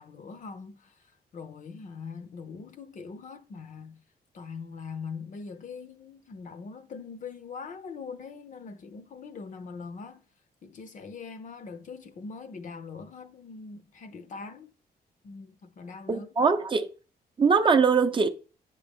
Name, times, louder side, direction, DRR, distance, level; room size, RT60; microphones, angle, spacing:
voice 1, 0.0-4.0 4.3-10.2 10.6-14.7 15.2-16.3, left 5 dB, 50° left, 0.7 m, -42 dB
voice 2, 16.1-16.9 17.4-18.3, right 5 dB, 30° right, 0.6 m, -22 dB
9.5 x 5.3 x 3.5 m
wide cardioid pair, 145°, 17 cm